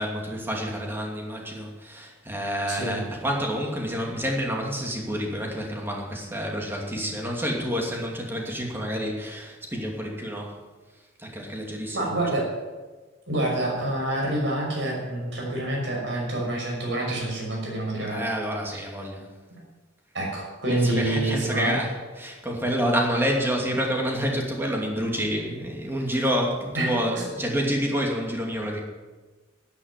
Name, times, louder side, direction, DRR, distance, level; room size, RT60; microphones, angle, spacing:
voice 1, 0.0-10.6 11.2-12.1 18.1-19.3 20.7-21.9 22.2-28.8, equal, 10° right, 0 dB, 2.7 m, -28 dB
voice 2, 2.7-3.0 11.9-12.5 13.3-18.2 20.1-21.8 26.7-27.2, right 1 dB, 65° right, -1 dB, 5.9 m, -27 dB
12.0 x 9.7 x 9.1 m, 1.3 s
head